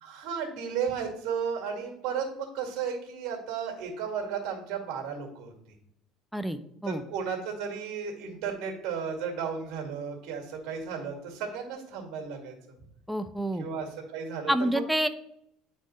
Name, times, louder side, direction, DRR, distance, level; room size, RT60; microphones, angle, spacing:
voice 1, 0.0-5.5 6.9-12.6 13.5-14.8, right 6 dB, 70° right, 3 dB, 1.8 m, -34 dB
voice 2, 6.3-7.0 13.1-13.7 14.5-15.1, right 1 dB, ahead, 10 dB, 0.5 m, -28 dB
9.3 x 4.4 x 3.1 m, 0.75 s
supercardioid pair, 95°, 0 cm